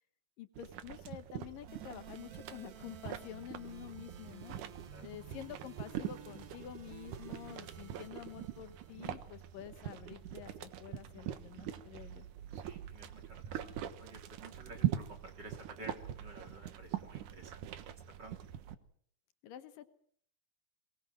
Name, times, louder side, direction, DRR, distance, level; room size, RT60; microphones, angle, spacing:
voice 1, 0.4-4.6 5.0-12.3 19.4-19.9, left 11 dB, 85° left, 10 dB, 3.0 m, -49 dB
sound 1, 0.6-18.8, right 11 dB, 70° right, 2.7 m, -43 dB
sound 2, 1.7-9.7, right 8 dB, 50° right, 2.5 m, -55 dB
voice 2, 12.5-17.7 18.2-18.4, right 2 dB, 30° right, 4 dB, 4.1 m, -53 dB
23.5 x 20.0 x 7.7 m, 0.63 s
omnidirectional pair, 3.8 m